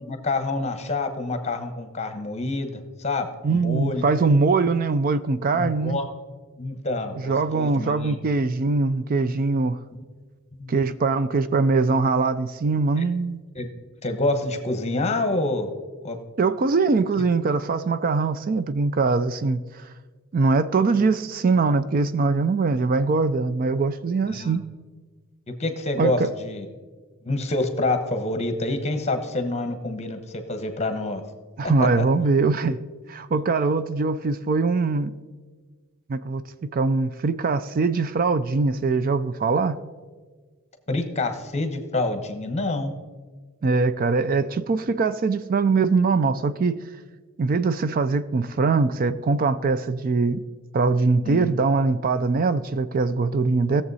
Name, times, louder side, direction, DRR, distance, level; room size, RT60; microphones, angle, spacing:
voice 1, 0.0-4.0 5.5-6.0 6.6-8.2 10.5-10.7 13.0-13.1 13.5-13.7 14.0-15.7 16.0-16.2 24.3-24.6 25.5-26.7 27.2-31.2 31.6-32.1 40.9-42.9 51.2-51.6, left 2 dB, 30° left, 1.1 m, -27 dB
voice 2, 3.4-6.0 7.2-9.8 10.7-13.4 16.4-19.8 20.3-24.7 26.0-26.3 31.6-32.8 33.1-35.1 36.1-39.8 43.6-46.8 47.4-50.4 50.7-53.8, right 4 dB, 40° right, 0.4 m, -22 dB
18.0 x 7.1 x 4.1 m
head